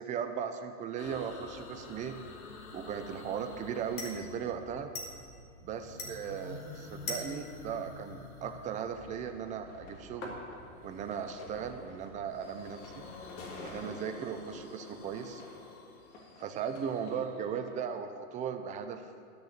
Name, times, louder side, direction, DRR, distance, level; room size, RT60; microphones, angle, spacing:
voice 1, 0.0-2.2 2.7-4.9 5.6-10.3 10.8-13.0 13.6-15.4 16.4-19.1, right 7 dB, 20° right, 7 dB, 0.6 m, -37 dB
sound 1, 1.0-4.9 5.7-9.4 10.8-11.9 12.3-17.3, left 4 dB, 85° left, 1.7 m, -49 dB
sound 2, 1.0-13.8, left 2 dB, 35° left, 2.3 m, -48 dB
sound 3, 9.2-17.8, left 2 dB, 55° left, 3.3 m, -52 dB
11.5 x 6.9 x 8.6 m, 2.2 s
hypercardioid pair, 135°, 42 cm